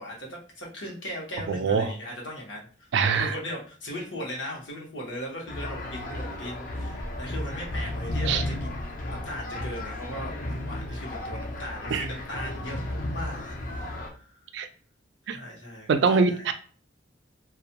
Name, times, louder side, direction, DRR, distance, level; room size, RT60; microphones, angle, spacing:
voice 1, 0.0-14.5 15.3-16.5, equal, 75° left, -2 dB, 0.9 m, -38 dB
voice 2, 1.5-1.9 2.9-3.3 8.3-8.4 11.9-12.0 14.5-14.7 15.3-15.4 15.9-16.5, right 5 dB, 65° right, 8 dB, 0.3 m, -23 dB
sound 1, 5.5-14.1, left 1 dB, 45° left, 0.4 m, -33 dB
2.3 x 2.1 x 2.8 m, 0.41 s
head